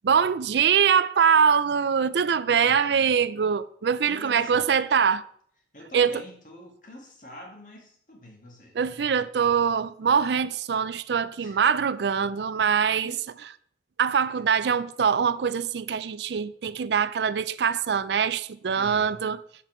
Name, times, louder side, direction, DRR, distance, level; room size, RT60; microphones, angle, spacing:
voice 1, 0.0-5.2 5.9-6.2 8.8-13.1 14.0-19.4, right 7 dB, 75° right, 0.4 m, -23 dB
voice 2, 2.5-3.2 4.1-4.7 5.7-8.8 11.4-12.4 13.0-13.2 14.3-14.5 18.8-19.3, left 1 dB, 45° left, 2.1 m, -47 dB
7.1 x 5.5 x 5.6 m
head